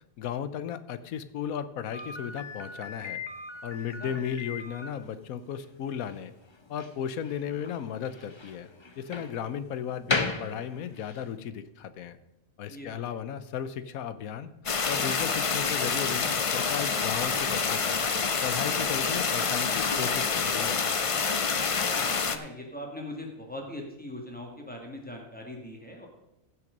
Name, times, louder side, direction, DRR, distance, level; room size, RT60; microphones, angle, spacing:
voice 1, 0.2-3.2 3.6-6.3 6.7-8.7 9.0-12.2 12.6-14.5 14.8-18.0 18.4-20.9, left 8 dB, 80° left, 13 dB, 1.2 m, -35 dB
Slam, 1.9-11.3, left 3 dB, 25° left, 0.8 m, -37 dB
voice 2, 3.8-4.2 12.7-13.0 21.7-26.1, left 1 dB, 5° left, 1 dB, 2.1 m, -41 dB
sound 1, 14.7-22.4, left 5 dB, 50° left, 0.4 m, -27 dB
15.5 x 5.9 x 5.2 m, 0.94 s
omnidirectional pair, 1.5 m